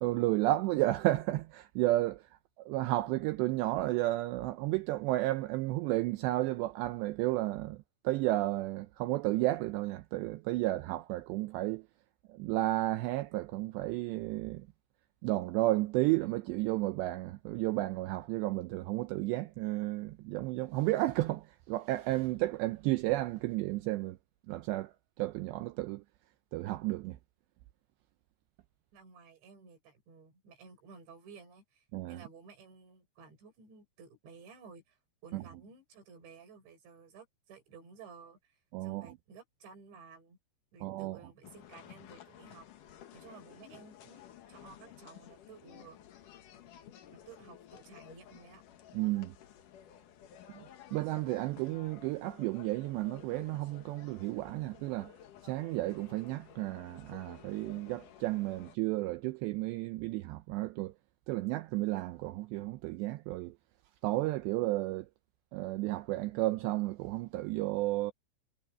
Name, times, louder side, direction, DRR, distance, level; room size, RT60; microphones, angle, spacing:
voice 1, 0.0-11.9 12.3-14.7 15.2-24.2 24.5-26.0 26.5-27.2 31.9-32.2 35.3-35.4 38.7-39.2 40.8-41.2 48.9-49.4 50.5-50.6 50.9-55.1 55.4-60.9 61.3-63.6 64.0-65.1 65.5-68.1, right 18 dB, 85° right, 2.5 m, -32 dB
voice 2, 28.9-40.4 40.7-42.7 43.1-46.0 47.1-48.6, right 5 dB, 65° right, 7.8 m, -54 dB
sound 1, 41.4-58.8, left 10 dB, 65° left, 2.1 m, -54 dB
omnidirectional pair, 5.7 m